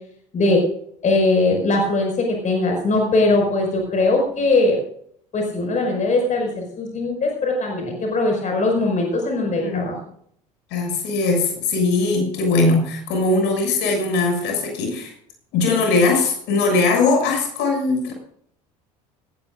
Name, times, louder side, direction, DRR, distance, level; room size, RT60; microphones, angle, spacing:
voice 1, 1.0-4.8 5.3-9.9, left 2 dB, 40° left, 2 dB, 5.7 m, -20 dB
voice 2, 10.7-15.1 15.5-18.1, left 3 dB, 60° left, 3 dB, 6.8 m, -20 dB
18.0 x 16.5 x 2.6 m, 0.66 s
hypercardioid pair, 70°, 20 cm